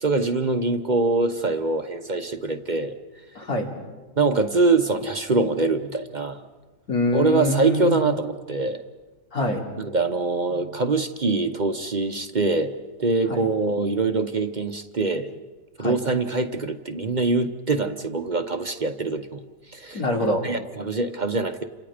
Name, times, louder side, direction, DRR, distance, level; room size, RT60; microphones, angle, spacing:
voice 1, 0.0-3.0 4.2-6.4 7.1-8.8 9.8-12.7 13.0-15.4 15.8-19.4 19.7-20.0 20.4-21.6, right 3 dB, 35° right, 7 dB, 0.9 m, -24 dB
voice 2, 3.4-3.7 6.9-8.0 9.3-9.7 13.3-13.5 15.8-16.0 19.9-20.4, left 2 dB, 80° left, 0 dB, 3.7 m, -24 dB
30.0 x 26.5 x 5.1 m, 1.3 s
omnidirectional pair, 1.5 m